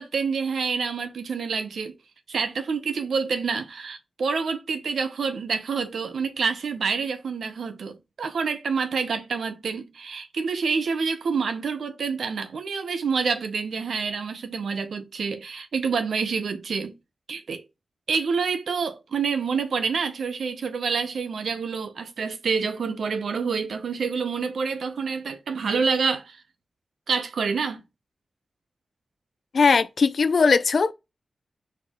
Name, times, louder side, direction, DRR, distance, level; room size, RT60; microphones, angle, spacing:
voice 1, 0.0-2.0 2.3-17.0 17.3-17.6 18.1-26.4 27.1-27.8, right 5 dB, 85° right, 0.8 m, -27 dB
voice 2, 29.5-30.9, left 5 dB, 70° left, 0.4 m, -19 dB
4.4 x 3.7 x 3.0 m
cardioid pair, 45°, 0 cm